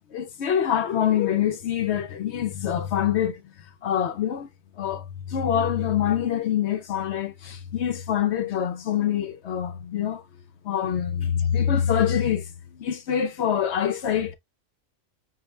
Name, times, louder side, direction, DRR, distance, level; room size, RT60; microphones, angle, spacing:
voice 1, 0.1-3.5 3.8-4.5 4.8-10.2 10.6-14.3, left 9 dB, 65° left, 0.7 m, -25 dB
5.6 x 2.1 x 3.1 m
omnidirectional pair, 1.4 m